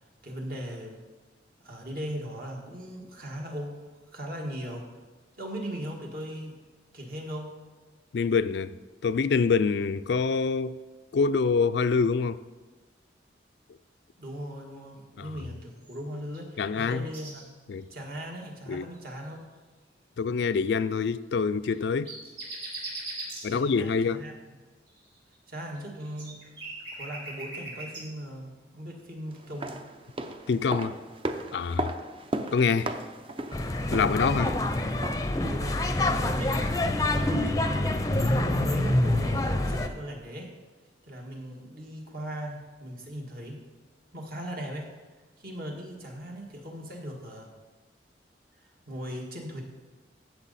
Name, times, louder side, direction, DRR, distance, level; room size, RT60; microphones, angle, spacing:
voice 1, 0.2-1.0 1.6-3.8 4.1-4.9 5.4-6.6 6.9-7.5 14.2-17.5 17.9-19.4 23.5-24.3 25.5-26.4 26.9-29.8 35.5-37.6 38.2-40.5 41.1-43.6 44.1-44.9 45.4-47.5 48.9-49.6, equal, 55° right, 1.8 m, -38 dB
voice 2, 8.1-8.7 9.0-10.8 11.1-12.4 15.2-15.3 16.6-17.0 17.7-17.8 18.7-18.9 20.2-22.1 23.4-24.2 30.5-31.0 31.5-31.9 32.5-32.9 33.9-34.5, left 5 dB, 70° left, 0.4 m, -25 dB
sound 1, 15.8-16.4 16.7-17.4 17.8-18.0 18.9-19.3 21.6-23.4 24.9-28.0, right 2 dB, 80° right, 3.9 m, -40 dB
sound 2, 29.4-35.4 35.7-35.8, right 1 dB, 30° right, 0.6 m, -36 dB
sound 3, 33.5-39.9, left 1 dB, 20° left, 0.6 m, -26 dB
14.5 x 6.5 x 4.1 m
head